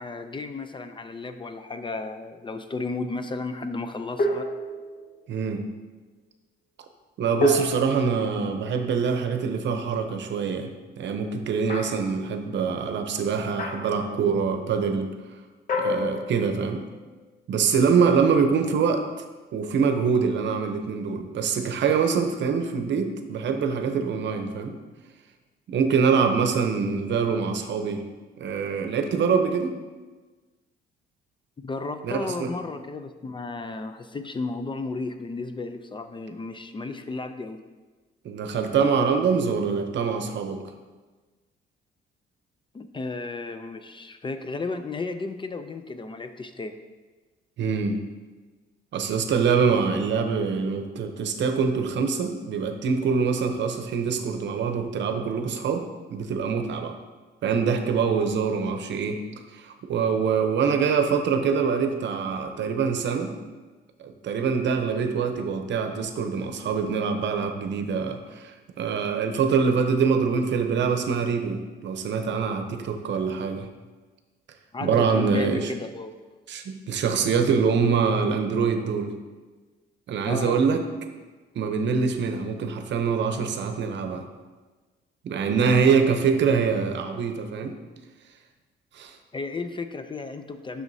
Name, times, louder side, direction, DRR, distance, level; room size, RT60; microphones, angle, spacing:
voice 1, 0.0-4.5 31.6-37.6 42.7-46.8 74.7-76.1 80.2-80.6 89.3-90.8, left 3 dB, 25° left, 9 dB, 0.4 m, -33 dB
sound 1, 4.2-5.2 7.4-9.1 11.7-12.2 13.6-14.1 15.7-16.9, equal, 45° left, 0.8 m, -28 dB
voice 2, 5.3-5.6 7.2-15.1 15.8-16.8 17.5-19.0 19.5-24.8 25.7-28.1 28.4-29.8 32.0-32.5 38.2-40.6 47.6-48.0 48.9-56.9 57.4-59.2 59.5-63.3 64.0-73.7 74.8-75.7 76.5-79.2 80.1-80.8 81.5-84.3 85.2-87.8 88.9-89.2, right 5 dB, 65° right, 6 dB, 0.7 m, -24 dB
7.8 x 6.3 x 2.7 m, 1.3 s
cardioid pair, 90°, 20 cm